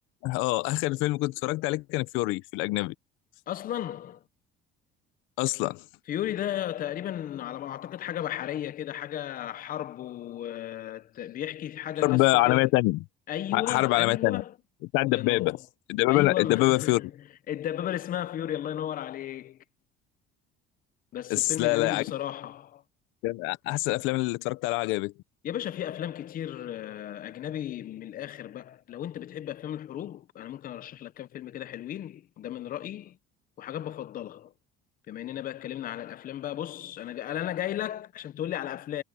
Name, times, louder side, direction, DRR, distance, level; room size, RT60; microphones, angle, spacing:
voice 1, 0.2-2.9 5.4-5.8 12.0-13.0 13.5-14.4 14.9-15.6 15.9-17.0 21.3-22.0 23.2-25.1, left 21 dB, 85° left, 0.8 m, -25 dB
voice 2, 3.5-4.2 6.1-12.7 13.3-14.5 15.1-15.6 16.1-17.1 17.5-19.6 21.1-22.8 25.4-33.2 33.6-34.5 35.1-39.0, left 11 dB, 45° left, 0.8 m, -35 dB
cardioid pair, 120°, 20 cm